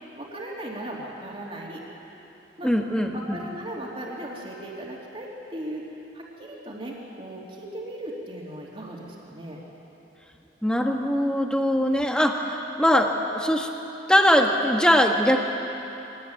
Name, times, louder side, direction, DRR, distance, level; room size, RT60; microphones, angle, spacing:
voice 1, 0.2-1.8 2.6-2.7 3.1-5.8 6.1-9.6, right 1 dB, 30° right, -3 dB, 3.1 m, -37 dB
voice 2, 2.6-3.4 10.6-13.7 14.1-15.4, equal, 5° left, 2 dB, 1.5 m, -21 dB
24.0 x 19.0 x 9.2 m, 3.0 s
head